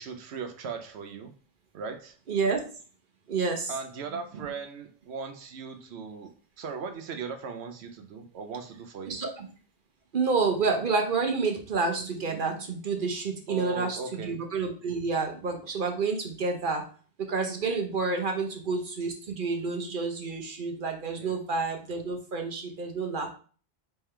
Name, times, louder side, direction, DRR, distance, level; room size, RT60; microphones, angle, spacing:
voice 1, 0.0-1.3 1.7-2.2 3.7-9.2 13.5-14.4 21.2-21.4, right 5 dB, 85° right, 6 dB, 0.9 m, -38 dB
voice 2, 2.3-2.6 3.3-3.7 4.4-4.5 9.1-9.5 10.1-16.8 17.2-23.3, right 4 dB, 55° right, 3 dB, 0.9 m, -29 dB
3.7 x 3.3 x 4.3 m, 0.40 s
omnidirectional pair, 1.1 m